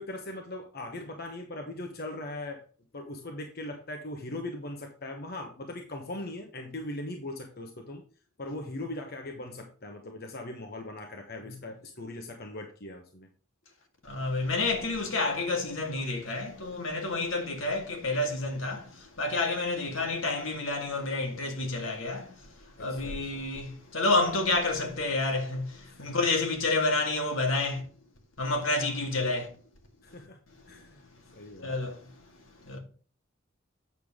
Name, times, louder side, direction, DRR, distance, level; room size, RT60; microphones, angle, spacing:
voice 1, 0.0-2.6 2.9-8.0 8.4-13.3 22.8-23.5 25.9-26.1 30.0-30.4 30.7-31.0 31.3-31.9, left 1 dB, 50° left, 1.1 m, -40 dB
voice 2, 14.0-22.5 22.8-27.9 28.4-29.5 31.6-32.1 32.6-32.8, left 2 dB, 75° left, 2.1 m, -29 dB
8.3 x 6.8 x 3.6 m
head